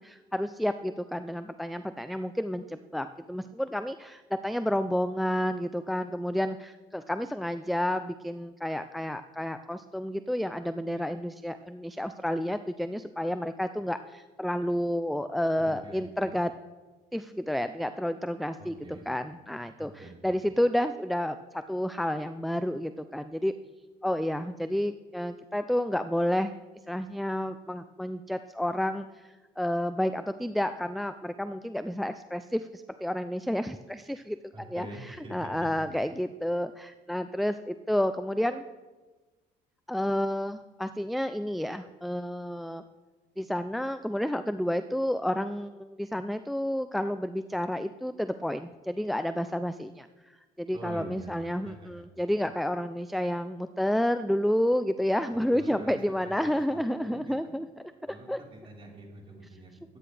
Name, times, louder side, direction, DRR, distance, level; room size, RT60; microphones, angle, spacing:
voice 1, 0.0-16.5 17.1-23.5 24.0-26.5 26.9-38.6 39.9-42.8 43.4-57.7 58.3-58.4, equal, ahead, 10 dB, 0.4 m, -30 dB
voice 2, 15.5-16.4 18.6-19.1 19.8-20.4 34.5-35.9 50.7-52.0 55.5-57.6 58.0-60.0, right 1 dB, 35° right, -2 dB, 4.3 m, -46 dB
24.0 x 9.8 x 3.3 m, 1.2 s
cardioid pair, 110°, 17 cm